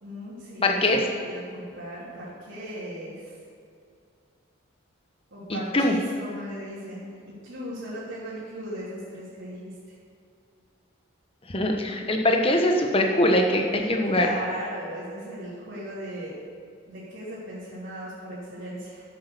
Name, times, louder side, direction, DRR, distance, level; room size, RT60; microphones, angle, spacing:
voice 1, 0.0-3.2 5.3-9.9 14.0-16.3 16.9-19.0, equal, 65° right, -11 dB, 3.2 m, -37 dB
voice 2, 0.6-1.0 5.5-6.0 11.5-14.3, left 1 dB, 25° left, 2 dB, 1.1 m, -22 dB
10.5 x 8.2 x 6.9 m, 2.3 s
head